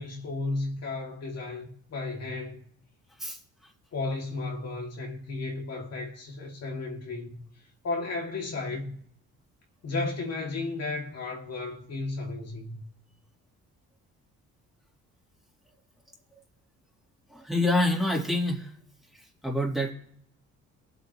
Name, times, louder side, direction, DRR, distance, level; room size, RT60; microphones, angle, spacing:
voice 1, 0.0-2.6 3.9-7.4 7.8-9.0 9.8-12.8, left 3 dB, 55° left, 2.5 m, -34 dB
voice 2, 17.3-18.7 19.4-19.9, left 1 dB, ahead, 3.1 m, -26 dB
22.5 x 8.1 x 3.1 m
cardioid pair, 90°, 30 cm